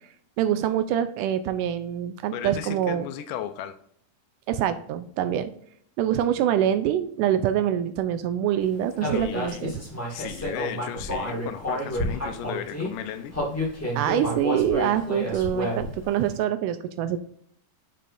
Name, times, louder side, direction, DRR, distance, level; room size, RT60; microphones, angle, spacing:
voice 1, 0.4-3.1 4.5-5.5 6.0-9.7 14.0-17.2, right 10 dB, 80° right, 11 dB, 2.0 m, -25 dB
voice 2, 2.3-3.8 9.1-9.8 10.1-13.4 13.7-13.8, left 10 dB, 80° left, 10 dB, 2.2 m, -35 dB
Human voice, 9.0-12.9 13.3-16.0, left 1 dB, 10° left, 0.8 m, -30 dB
7.4 x 5.5 x 2.6 m, 0.63 s
omnidirectional pair, 3.9 m